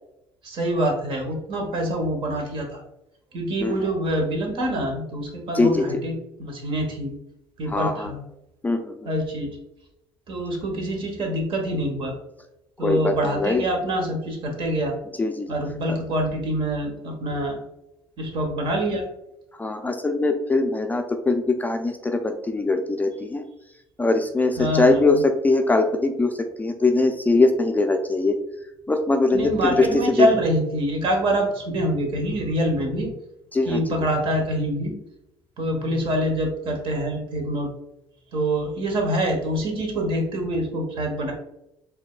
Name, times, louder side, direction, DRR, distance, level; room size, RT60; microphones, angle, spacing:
voice 1, 0.4-2.8 3.3-7.2 7.6-8.2 9.0-9.5 10.3-12.1 12.8-15.0 15.5-17.6 18.2-19.1 24.6-25.2 29.3-33.1 33.6-34.9 35.6-37.7 38.3-41.3, right 1 dB, 55° right, 2 dB, 1.2 m, -25 dB
voice 2, 5.5-5.9 7.7-8.1 8.6-9.1 12.8-13.6 15.2-15.5 19.6-23.4 24.0-26.3 26.6-28.4 28.9-29.5 29.8-29.9 30.2-30.3 33.5-34.0, left 3 dB, 15° left, 5 dB, 0.4 m, -21 dB
4.5 x 2.8 x 2.2 m, 0.85 s
supercardioid pair, 75°, 11 cm